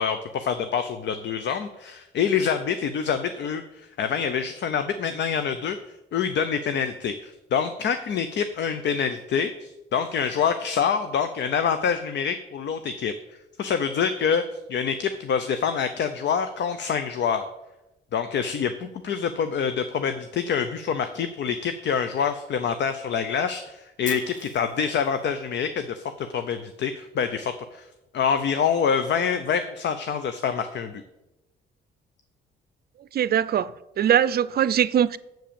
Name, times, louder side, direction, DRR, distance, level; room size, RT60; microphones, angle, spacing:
voice 1, 0.0-5.8 6.1-13.1 13.6-14.4 14.7-17.4 18.1-27.9 28.1-31.0, left 7 dB, 65° left, 0.8 m, -26 dB
Fire, 24.0-26.1, left 2 dB, 40° left, 1.9 m, -41 dB
voice 2, 33.1-33.7 34.0-35.2, right 9 dB, 50° right, 0.5 m, -21 dB
7.6 x 7.6 x 7.0 m
cardioid pair, 90°, 20 cm